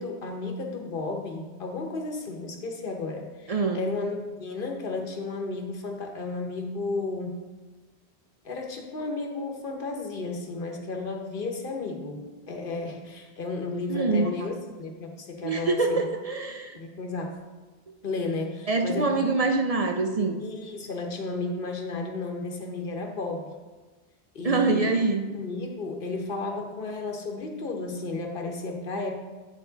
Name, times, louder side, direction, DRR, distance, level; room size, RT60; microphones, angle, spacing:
voice 1, 0.0-7.4 8.4-12.2 12.5-16.0 16.7-17.4 18.0-19.3 20.4-23.5 24.3-25.0 25.3-29.1, left 3 dB, 55° left, 3 dB, 1.1 m, -33 dB
voice 2, 3.5-3.9 13.9-14.3 15.4-16.8 18.7-20.4 24.4-25.3, right 3 dB, 50° right, 4 dB, 0.4 m, -25 dB
8.9 x 4.5 x 3.9 m, 1.3 s
omnidirectional pair, 1.1 m